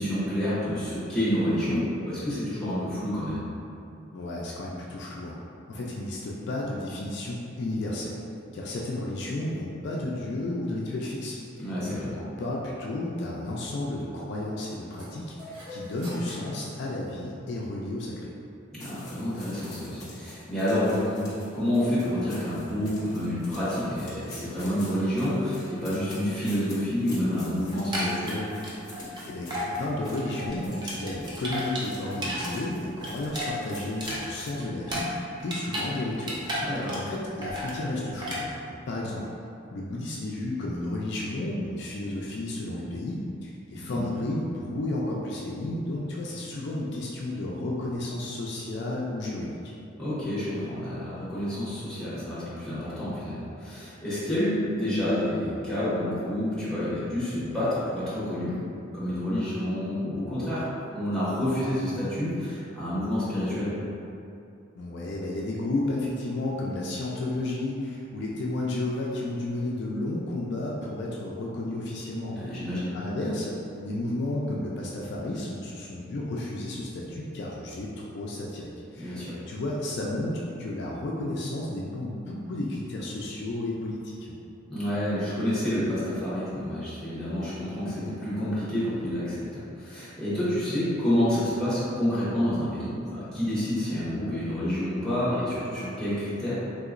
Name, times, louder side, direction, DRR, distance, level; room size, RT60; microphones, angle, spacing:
voice 1, 0.0-3.4 11.6-12.1 18.8-28.4 36.6-37.0 43.7-44.0 50.0-58.5 58.9-60.6 60.9-63.7 72.4-72.9 79.0-79.4 84.7-89.4 89.8-96.5, left 1 dB, 5° left, -11 dB, 1.1 m, -28 dB
voice 2, 4.1-5.4 5.7-8.2 8.5-18.3 29.3-36.4 36.9-39.2 39.7-49.7 64.8-84.3, left 1 dB, 55° left, -4 dB, 0.3 m, -32 dB
sound 1, 15.0-17.7, left 1 dB, 85° right, 1.2 m, -44 dB
sound 2, 18.8-34.6, left 1 dB, 20° left, 0.7 m, -46 dB
sound 3, 27.7-29.2 29.5-29.7 30.0-32.5 32.8-35.9 36.1-37.2 37.4-37.8 38.2-38.4, equal, 25° right, 0.5 m, -33 dB
3.5 x 2.9 x 2.4 m, 2.7 s
head